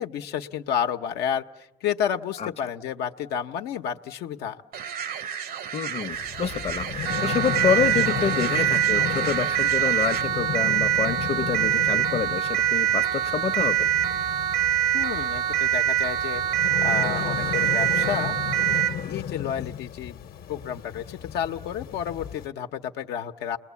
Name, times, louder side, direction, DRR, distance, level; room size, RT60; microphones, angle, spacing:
voice 1, 0.0-4.6 14.9-18.4 19.0-20.2 20.5-23.6, left 8 dB, 80° left, 0.9 m, -31 dB
sound 1, 4.7-10.2, right 8 dB, 65° right, 0.9 m, -34 dB
voice 2, 5.7-13.9, left 7 dB, 40° left, 0.8 m, -28 dB
sound 2, 6.1-22.5, left 9 dB, 65° left, 1.1 m, -34 dB
Siren, 7.1-19.0, right 12 dB, 85° right, 1.5 m, -24 dB
29.0 x 21.0 x 8.3 m
cardioid pair, 110°, 17 cm